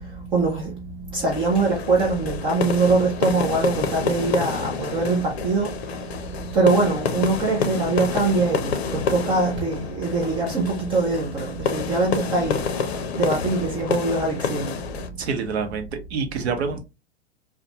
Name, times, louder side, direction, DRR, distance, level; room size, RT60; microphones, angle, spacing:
voice 1, 0.3-0.7 1.1-5.7 6.5-12.6 13.2-14.7, right 3 dB, 15° right, 0.3 m, -22 dB
sound 1, 1.3-15.1, left 6 dB, 65° left, 0.6 m, -29 dB
voice 2, 15.2-16.8, right 5 dB, 70° right, 0.8 m, -27 dB
2.4 x 2.2 x 2.8 m
hypercardioid pair, 110°, 34 cm